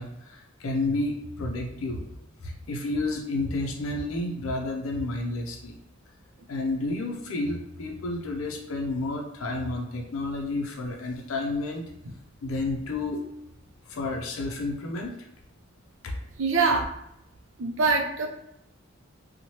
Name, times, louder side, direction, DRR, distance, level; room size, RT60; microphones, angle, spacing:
voice 1, 0.0-2.1 2.4-5.8 6.5-11.9 12.4-13.3 13.9-15.3 16.0-16.2, left 2 dB, 90° left, 1 dB, 0.5 m, -31 dB
voice 2, 16.4-16.9 17.6-18.3, right 4 dB, 65° right, 2 dB, 0.5 m, -23 dB
3.0 x 2.1 x 2.8 m, 0.79 s
head